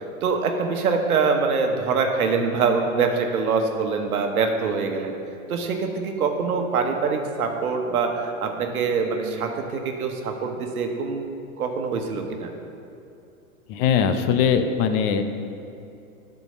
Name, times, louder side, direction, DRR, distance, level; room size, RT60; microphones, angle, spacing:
voice 1, 0.0-5.1 5.5-11.2 11.6-12.5, right 5 dB, 80° right, 4 dB, 1.2 m, -24 dB
voice 2, 13.7-15.2, left 7 dB, 40° left, 8 dB, 0.6 m, -21 dB
9.3 x 4.6 x 5.4 m, 2.6 s
hypercardioid pair, 115°, 43 cm